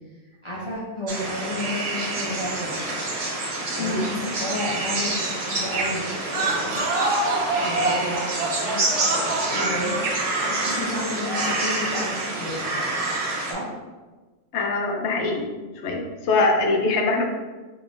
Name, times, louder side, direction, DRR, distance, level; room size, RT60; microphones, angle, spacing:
voice 1, 0.4-3.0 3.7-6.8 7.5-12.9 13.4-13.8, left 1 dB, 40° left, -8 dB, 0.5 m, -32 dB
sound 1, 1.1-13.5, right 2 dB, 45° right, 0.5 m, -28 dB
sound 2, 6.2-11.7, right 2 dB, 85° right, 1.1 m, -27 dB
voice 2, 14.5-15.5 15.8-17.2, left 3 dB, 70° left, 2 dB, 0.9 m, -23 dB
3.8 x 3.2 x 2.5 m, 1.3 s
omnidirectional pair, 1.3 m